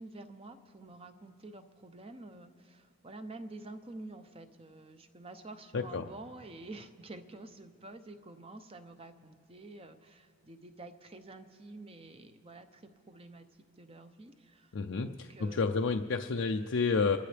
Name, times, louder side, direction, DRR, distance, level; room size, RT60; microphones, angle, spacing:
voice 1, 0.0-13.5 13.8-15.7, right 2 dB, 25° right, 8 dB, 0.7 m, -49 dB
voice 2, 5.7-6.0 14.7-17.2, left 4 dB, 65° left, 4 dB, 0.5 m, -30 dB
29.5 x 13.5 x 3.4 m, 2.4 s
head